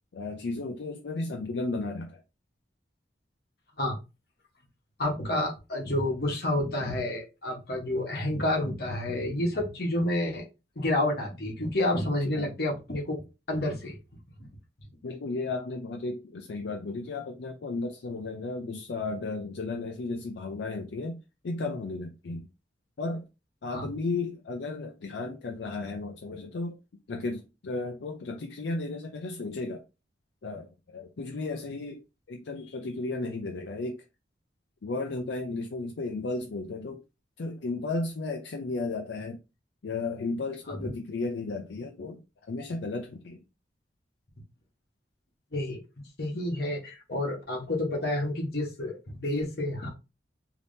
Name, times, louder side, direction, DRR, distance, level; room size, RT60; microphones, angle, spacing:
voice 1, 0.1-2.2 12.2-12.5 15.0-21.2 21.4-22.5 23.0-23.3 23.6-26.8 27.1-29.8 30.4-32.0 32.3-34.0 34.8-37.0 37.4-39.4 39.8-42.2 42.5-43.4, left 3 dB, 75° left, 0.4 m, -34 dB
voice 2, 5.0-10.4 10.8-13.9 14.4-14.5 23.7-23.9 40.7-40.9 45.5-45.8 46.2-49.9, left 1 dB, 60° left, 1.0 m, -29 dB
3.4 x 2.8 x 2.6 m
head